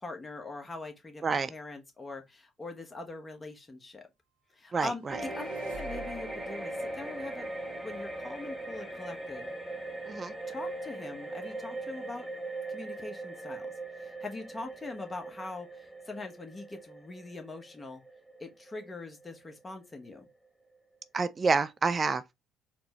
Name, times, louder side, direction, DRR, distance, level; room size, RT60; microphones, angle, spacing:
voice 1, 0.0-4.1 4.5-7.5 7.8-9.5 10.5-12.3 12.7-13.7 14.0-18.0 18.4-20.3, left 3 dB, 25° left, 1.0 m, -42 dB
voice 2, 4.7-5.2 10.1-10.3 21.1-22.3, right 4 dB, 35° right, 0.3 m, -28 dB
sound 1, 4.9-6.6, equal, 80° right, 0.7 m, -49 dB
sound 2, 5.1-19.7 20.1-20.2, right 2 dB, ahead, 1.2 m, -40 dB
4.1 x 2.2 x 2.8 m
hypercardioid pair, 55°, 0 cm